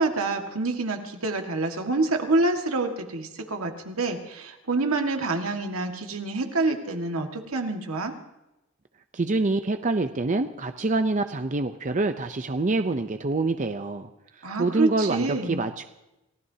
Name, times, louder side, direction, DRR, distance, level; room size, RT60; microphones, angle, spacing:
voice 1, 0.0-8.1 14.4-15.6, right 3 dB, 85° right, 4 dB, 1.8 m, -27 dB
voice 2, 9.1-14.1 14.6-15.8, right 2 dB, 35° right, 8 dB, 0.6 m, -26 dB
29.5 x 16.0 x 2.8 m, 0.95 s
head